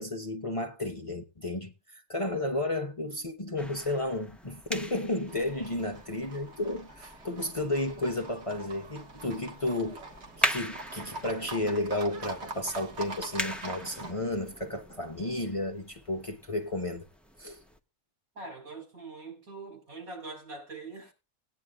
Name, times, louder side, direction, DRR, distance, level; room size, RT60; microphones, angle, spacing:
voice 1, 0.0-10.0 10.4-17.0 17.4-17.6, left 1 dB, 25° left, 1.0 m, -32 dB
sound 1, 3.6-17.8, equal, ahead, 0.5 m, -40 dB
Livestock farm animals working animals, 5.3-14.1, right 3 dB, 55° right, 1.8 m, -44 dB
voice 2, 18.3-21.1, right 3 dB, 80° right, 4.5 m, -43 dB
19.0 x 9.5 x 2.4 m
omnidirectional pair, 1.5 m